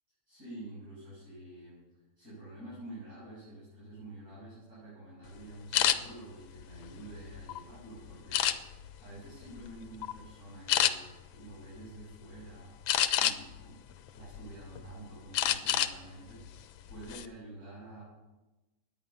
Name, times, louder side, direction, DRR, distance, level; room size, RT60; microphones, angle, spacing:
voice 1, 0.3-1.9 2.2-8.6 9.0-12.8 13.1-13.8 14.1-18.0, right 1 dB, 45° right, -10 dB, 7.4 m, -48 dB
sound 1, 5.7-6.0 6.6-7.6 8.3-8.9 9.4-9.7 10.0-10.2 10.7-10.9 12.9-13.6 14.1-14.8 15.3-16.0 16.3-16.5 16.9-17.3, left 11 dB, 80° left, 1.5 m, -28 dB
17.5 x 10.0 x 5.6 m, 1.1 s
omnidirectional pair, 2.1 m